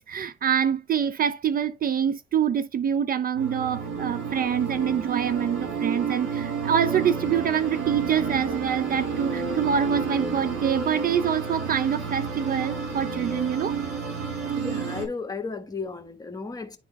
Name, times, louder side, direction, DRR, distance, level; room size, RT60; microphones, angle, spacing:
voice 1, 0.0-13.8, right 8 dB, 45° right, 0.4 m, -25 dB
sound 1, 3.4-15.1, right 5 dB, 80° right, 2.9 m, -30 dB
voice 2, 14.6-16.8, left 4 dB, 20° left, 1.4 m, -34 dB
11.0 x 3.9 x 2.4 m
cardioid pair, 90°, 20 cm